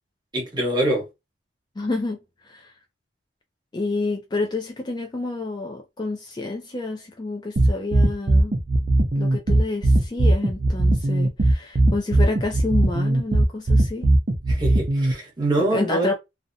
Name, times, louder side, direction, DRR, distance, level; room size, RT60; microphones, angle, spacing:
voice 1, 0.3-1.1 14.5-16.1, right 1 dB, 20° right, 1.0 m, -24 dB
voice 2, 1.8-2.7 3.7-8.6 9.2-14.1 15.6-16.1, left 3 dB, 20° left, 0.3 m, -29 dB
sound 1, 7.6-15.1, right 1 dB, 40° right, 0.5 m, -19 dB
2.6 x 2.1 x 2.6 m
head